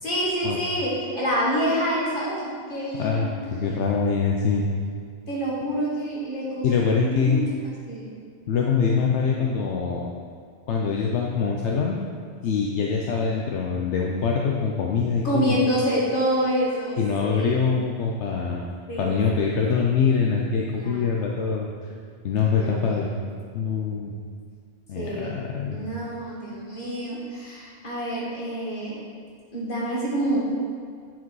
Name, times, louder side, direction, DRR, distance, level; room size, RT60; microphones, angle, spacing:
voice 1, 0.0-3.9 5.3-7.4 7.9-8.1 15.2-17.0 17.2-17.7 18.9-19.5 20.7-21.1 22.4-23.2 25.0-25.4 25.7-29.0 29.5-30.4, equal, 45° left, -6 dB, 2.1 m, -27 dB
voice 2, 3.0-3.3 3.6-4.7 6.6-7.4 8.5-10.1 10.7-12.0 12.4-15.6 17.0-18.6 19.0-21.7 22.2-23.1 23.5-24.1 24.9-25.8, left 5 dB, 80° left, -1 dB, 1.0 m, -24 dB
9.3 x 4.9 x 4.7 m, 2.2 s
omnidirectional pair, 1.2 m